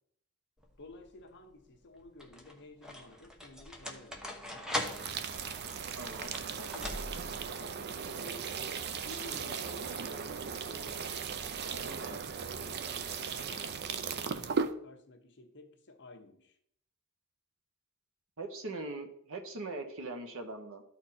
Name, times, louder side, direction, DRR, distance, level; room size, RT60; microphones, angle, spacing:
sound 1, 0.6-1.1 2.0-7.5, left 1 dB, 5° right, 1.0 m, -41 dB
voice 1, 0.8-4.6 6.5-8.5 9.0-12.8 13.3-16.6, left 2 dB, 55° left, 1.1 m, -53 dB
sound 2, 4.8-14.7, right 6 dB, 50° right, 0.5 m, -37 dB
voice 2, 5.9-6.4 18.4-20.8, right 2 dB, 65° right, 1.2 m, -41 dB
13.0 x 4.3 x 4.2 m
head